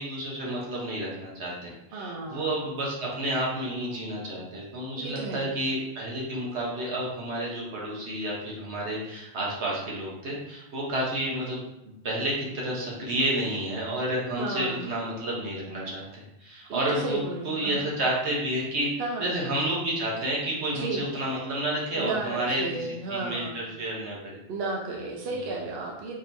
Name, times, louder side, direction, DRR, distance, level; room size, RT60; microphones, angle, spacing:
voice 1, 0.0-11.6 11.8-16.0 16.4-17.2 17.4-18.9 19.2-24.4, right 1 dB, 90° right, -4 dB, 1.3 m, -30 dB
voice 2, 1.9-2.6 4.9-5.5 14.3-14.9 16.7-17.8 19.0-19.2 20.7-21.1 21.9-23.6 24.5-26.2, right 3 dB, 70° right, -2 dB, 0.9 m, -33 dB
3.8 x 2.9 x 2.6 m, 0.87 s
omnidirectional pair, 1.1 m